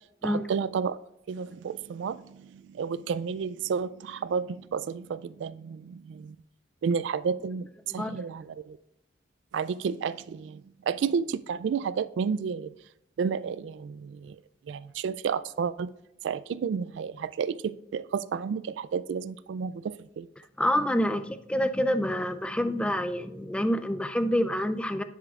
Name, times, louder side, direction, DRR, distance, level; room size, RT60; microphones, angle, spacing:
voice 1, 0.2-1.0 1.3-6.4 6.8-7.7 7.9-8.8 9.5-12.7 13.2-14.4 14.7-15.9 16.2-20.3, right 6 dB, 70° right, 17 dB, 0.3 m, -31 dB
voice 2, 20.6-25.0, equal, 5° left, 11 dB, 0.4 m, -27 dB
9.9 x 7.4 x 2.4 m, 0.88 s
head